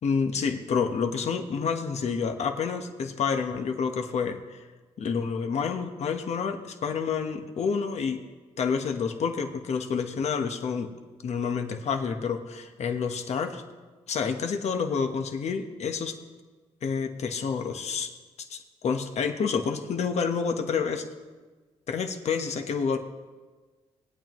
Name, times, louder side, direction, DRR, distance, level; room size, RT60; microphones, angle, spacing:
voice 1, 0.0-4.6 5.0-8.2 8.6-10.9 11.2-13.6 14.1-16.2 16.8-18.1 18.5-21.1 21.9-23.0, left 6 dB, 60° left, 6 dB, 1.2 m, -28 dB
19.5 x 9.1 x 3.1 m, 1.4 s
cardioid pair, 85°, 13 cm